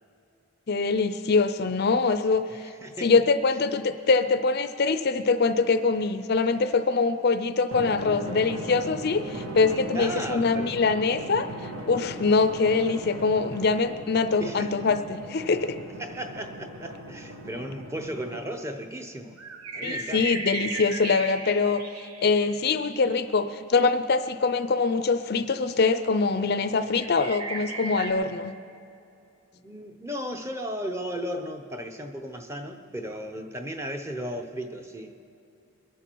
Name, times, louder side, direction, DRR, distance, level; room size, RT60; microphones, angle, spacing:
voice 1, 0.7-2.7 3.0-11.5 11.9-15.8 19.8-21.8 22.2-28.5, left 4 dB, 45° left, 11 dB, 0.5 m, -24 dB
voice 2, 2.3-3.1 9.9-10.8 14.4-14.8 16.0-19.4 19.7-20.4 29.5-35.1, equal, 10° right, 6 dB, 0.8 m, -35 dB
Drum, 7.7-18.7, right 1 dB, 70° right, 1.8 m, -38 dB
sound 1, 19.4-22.7 27.0-28.1, right 3 dB, 85° right, 1.5 m, -36 dB
22.5 x 11.0 x 4.6 m, 2.7 s
head